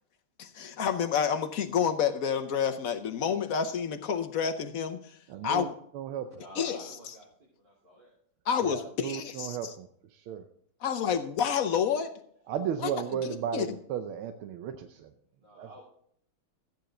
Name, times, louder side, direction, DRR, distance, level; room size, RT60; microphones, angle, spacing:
voice 1, 0.4-5.2 5.4-5.7 6.6-6.8 8.5-9.7 10.8-12.1 12.8-12.9 13.5-13.7, left 7 dB, 60° left, 8 dB, 0.9 m, -29 dB
voice 2, 5.3-5.7 5.9-6.4 8.6-10.4 12.5-15.1 15.6-15.7, right 8 dB, 90° right, 8 dB, 1.6 m, -35 dB
voice 3, 6.2-8.1 15.3-15.8, equal, 55° right, -7 dB, 3.9 m, -51 dB
13.5 x 9.1 x 3.8 m, 0.65 s
omnidirectional pair, 2.3 m